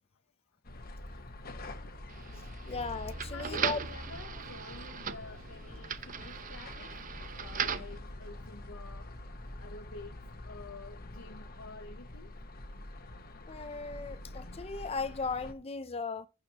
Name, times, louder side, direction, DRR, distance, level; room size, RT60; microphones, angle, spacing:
sound 1, 0.6-15.5, left 1 dB, 45° left, 1.2 m, -46 dB
sound 2, 2.1-8.0, right 7 dB, 40° right, 0.7 m, -39 dB
voice 1, 2.7-3.8 13.5-16.3, left 4 dB, 30° left, 0.6 m, -37 dB
sound 3, 2.7-9.7, right 1 dB, 75° right, 3.3 m, -50 dB
voice 2, 3.2-7.0 7.4-9.1 9.6-10.2 10.4-12.3, left 3 dB, 80° left, 1.0 m, -48 dB
15.0 x 6.4 x 3.0 m
head